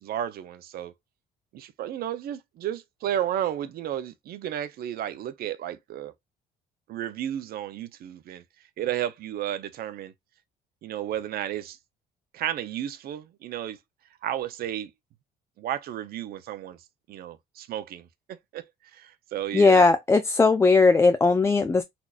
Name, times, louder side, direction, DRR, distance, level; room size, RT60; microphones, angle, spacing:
voice 1, 0.0-0.9 1.5-6.1 6.9-8.4 8.8-10.1 10.8-11.8 12.3-13.8 14.2-14.9 15.6-16.8 17.1-18.1 18.5-18.6 18.9-19.9, right 11 dB, 65° right, 0.6 m, -32 dB
voice 2, 19.5-21.8, left 3 dB, 15° left, 0.4 m, -18 dB
4.2 x 2.9 x 2.4 m
cardioid pair, 110°, 17 cm